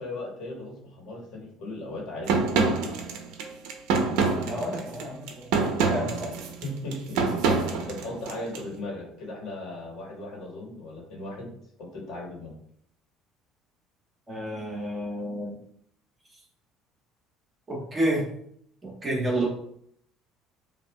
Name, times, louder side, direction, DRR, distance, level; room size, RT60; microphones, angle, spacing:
voice 1, 0.0-2.3 6.6-12.5, left 1 dB, 60° left, 0 dB, 1.3 m, -37 dB
sound 1, 2.3-8.6, right 4 dB, 85° right, 0.6 m, -26 dB
voice 2, 4.4-6.4 14.3-15.6 17.7-18.3 18.8-19.5, right 1 dB, 20° right, -4 dB, 1.2 m, -30 dB
5.7 x 2.5 x 2.3 m, 0.68 s
cardioid pair, 140°, 0 cm